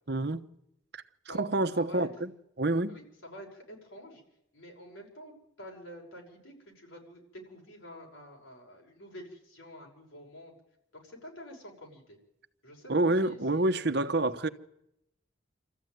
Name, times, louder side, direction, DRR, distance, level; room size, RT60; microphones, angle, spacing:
voice 1, 0.1-0.4 0.9-1.0 1.3-2.3 2.6-2.9 12.9-14.5, right 2 dB, 55° right, 1.0 m, -28 dB
voice 2, 1.8-2.1 2.7-4.2 4.5-10.5 10.9-12.2 12.6-13.9, equal, 80° left, 5.8 m, -48 dB
27.0 x 14.0 x 9.3 m
head